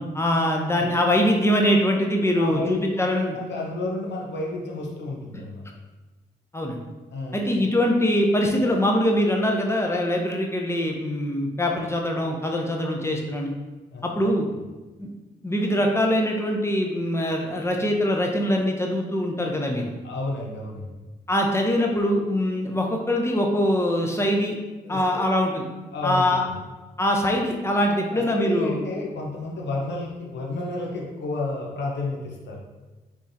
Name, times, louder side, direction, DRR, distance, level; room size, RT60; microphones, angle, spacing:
voice 1, 0.0-3.4 6.5-6.8 7.3-13.5 14.0-14.5 15.0-15.1 15.4-19.9 21.3-24.5 24.9-25.7 26.0-26.4 27.0-28.9, equal, 15° left, 1 dB, 0.7 m, -23 dB
voice 2, 2.4-2.8 3.2-5.7 7.1-7.4 13.9-14.3 20.0-20.9 24.8-25.2 25.9-26.6 28.1-32.6, left 2 dB, 70° left, -1 dB, 0.7 m, -31 dB
3.5 x 3.2 x 2.7 m, 1.2 s
supercardioid pair, 45°, 19 cm